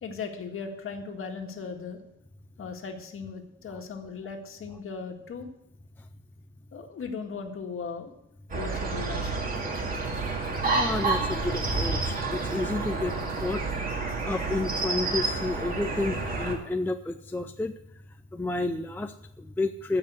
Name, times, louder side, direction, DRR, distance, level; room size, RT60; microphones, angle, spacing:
voice 1, 0.0-2.0 2.6-5.5 6.7-8.1 8.5-9.5, left 5 dB, 45° left, 4 dB, 1.8 m, -37 dB
sound 1, 8.5-16.5, right 3 dB, 30° right, 2.3 m, -29 dB
sound 2, 9.5-14.9, right 7 dB, 70° right, 1.7 m, -46 dB
voice 2, 10.7-13.6 14.2-17.7 18.3-20.0, left 2 dB, 5° left, 7 dB, 0.4 m, -31 dB
15.0 x 5.8 x 8.2 m, 0.79 s
cardioid pair, 150°, 29 cm